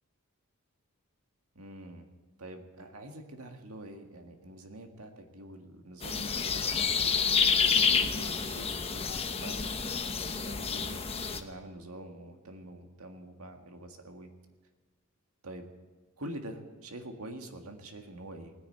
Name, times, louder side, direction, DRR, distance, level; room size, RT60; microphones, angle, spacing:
voice 1, 1.6-2.1 2.4-7.1 7.5-14.3 15.4-15.7 16.2-18.5, right 1 dB, 85° right, 4 dB, 1.8 m, -46 dB
sound 1, 6.0-11.4, left 6 dB, 30° left, 0.9 m, -29 dB
17.5 x 10.0 x 7.9 m, 1.3 s
head